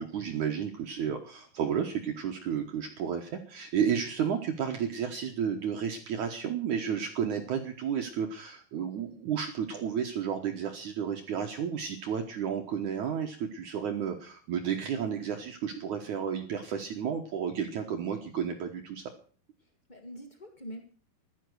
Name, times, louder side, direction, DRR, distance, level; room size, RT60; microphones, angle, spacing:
voice 1, 0.0-19.0, right 8 dB, 60° right, 3 dB, 2.2 m, -32 dB
voice 2, 19.6-20.8, equal, 70° left, 4 dB, 0.4 m, -45 dB
15.5 x 11.5 x 6.4 m, 0.42 s
omnidirectional pair, 4.7 m